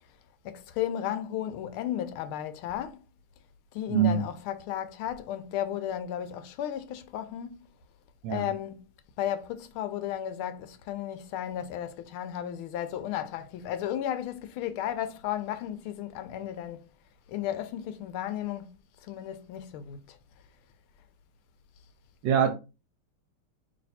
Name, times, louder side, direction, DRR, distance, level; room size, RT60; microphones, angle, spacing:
voice 1, 0.4-3.0 3.7-7.7 8.3-8.9 9.2-16.8 17.3-18.7 19.0-20.2, left 11 dB, 80° left, 1.4 m, -34 dB
voice 2, 3.9-4.2 8.2-8.4 22.2-22.5, right 8 dB, 70° right, 1.2 m, -23 dB
3.3 x 3.0 x 4.1 m
omnidirectional pair, 2.4 m